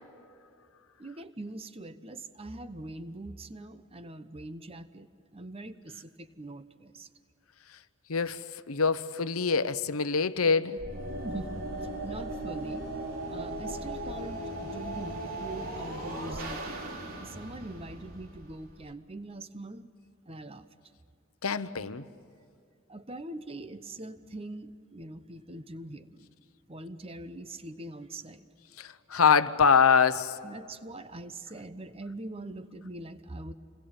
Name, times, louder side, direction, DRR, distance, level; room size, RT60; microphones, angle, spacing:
voice 1, 1.0-7.1 11.2-12.9 13.3-19.9 20.3-20.7 22.9-26.3 26.7-28.5 30.4-33.5, right 2 dB, 25° right, 0.9 m, -43 dB
voice 2, 8.1-10.8 21.4-22.0 28.8-30.4, left 6 dB, 85° left, 1.0 m, -24 dB
sound 1, 10.8-18.9, right 1 dB, 75° right, 3.4 m, -38 dB
28.0 x 21.5 x 8.9 m
head